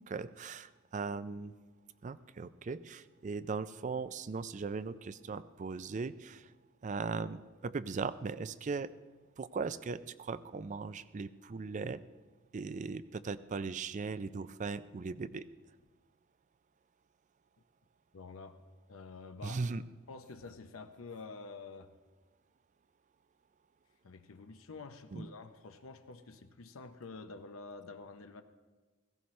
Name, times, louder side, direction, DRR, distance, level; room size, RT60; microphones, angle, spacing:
voice 1, 0.0-1.5 2.0-6.5 6.8-8.9 9.4-12.0 12.5-15.5 19.4-19.8 25.1-25.3, right 4 dB, 35° right, 15 dB, 0.4 m, -38 dB
voice 2, 18.1-18.6 18.9-19.6 20.1-21.9 24.0-28.4, left 4 dB, 75° left, 8 dB, 0.7 m, -48 dB
17.0 x 15.5 x 3.2 m, 1.3 s
head